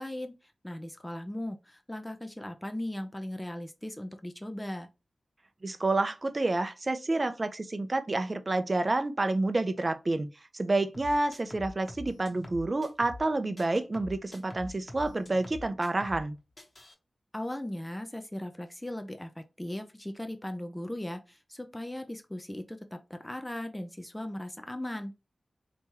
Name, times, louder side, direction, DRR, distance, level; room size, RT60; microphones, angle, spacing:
voice 1, 0.0-4.9 17.3-25.1, left 1 dB, 15° left, 0.5 m, -38 dB
voice 2, 5.6-10.3 10.5-16.4, right 2 dB, 40° right, 0.5 m, -29 dB
sound 1, 10.9-13.3 13.6-16.3 16.6-16.9, left 2 dB, 35° left, 1.1 m, -45 dB
3.4 x 2.9 x 2.8 m
cardioid pair, 50°, 0 cm